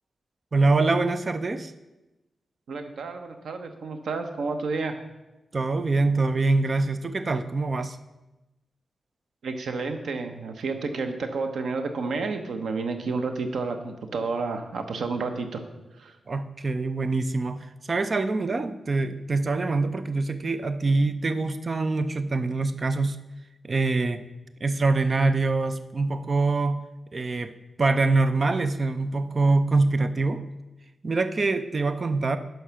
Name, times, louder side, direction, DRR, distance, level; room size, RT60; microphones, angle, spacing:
voice 1, 0.5-1.7 5.5-8.0 16.3-23.2 23.6-24.2 24.6-26.8 27.1-27.5 27.8-30.4 31.0-32.4, right 3 dB, 35° right, 11 dB, 0.5 m, -24 dB
voice 2, 2.7-5.0 9.4-15.6 16.0-16.2, right 4 dB, 85° right, 6 dB, 1.0 m, -30 dB
11.0 x 4.6 x 5.8 m, 1.0 s
wide cardioid pair, 150°, 0 cm